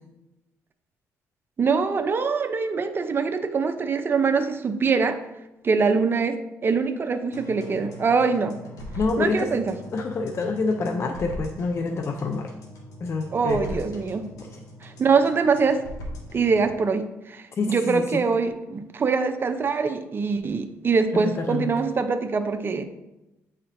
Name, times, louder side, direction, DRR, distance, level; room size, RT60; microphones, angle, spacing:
voice 1, 1.6-5.2 5.6-8.6 9.2-9.7 13.3-14.2 14.8-15.9 16.3-22.8, right 5 dB, 35° right, 7 dB, 0.6 m, -23 dB
sound 1, 7.3-16.7, equal, 70° left, 1.5 m, -40 dB
voice 2, 9.0-9.5 9.9-12.5 13.0-13.8 14.5-14.6 17.6-18.3 21.1-21.7, left 3 dB, 45° left, 4 dB, 0.5 m, -27 dB
8.4 x 4.3 x 2.6 m, 0.95 s
cardioid pair, 80°, 6 cm